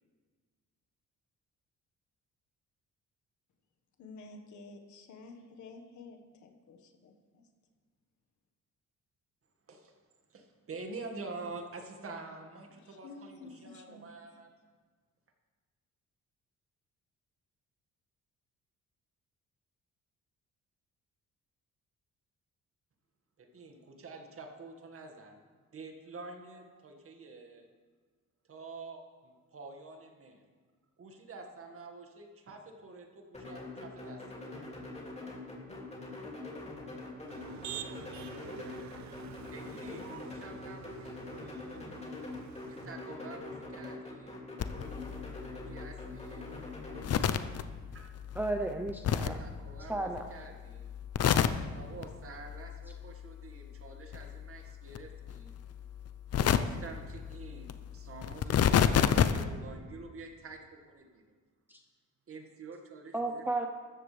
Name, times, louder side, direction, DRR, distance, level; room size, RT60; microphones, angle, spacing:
voice 1, 4.0-7.4 12.7-14.4, left 3 dB, 70° left, 5 dB, 1.6 m, -51 dB
voice 2, 10.3-14.5 23.4-25.4 25.7-27.7 28.5-30.4 31.0-34.2 39.5-41.2 42.7-44.4 45.5-46.5 47.9-48.1 49.2-50.9 51.7-55.6 56.5-61.2 62.3-63.5, right 3 dB, 45° right, 3 dB, 1.9 m, -47 dB
sound 1, 33.3-47.1, left 2 dB, 20° left, 2.8 m, -44 dB
Motor vehicle (road), 37.3-42.9, right 10 dB, 65° right, 0.9 m, -48 dB
sound 2, 44.6-50.4 50.6-52.0 52.4-53.8 54.1-59.4, left 8 dB, 55° left, 0.7 m, -32 dB
voice 3, 48.3-49.4 49.9-50.3 61.7-61.8 63.1-63.7, right 2 dB, 5° right, 4 dB, 0.8 m, -33 dB
14.5 x 13.5 x 3.4 m, 1.5 s
cardioid pair, 90°, 30 cm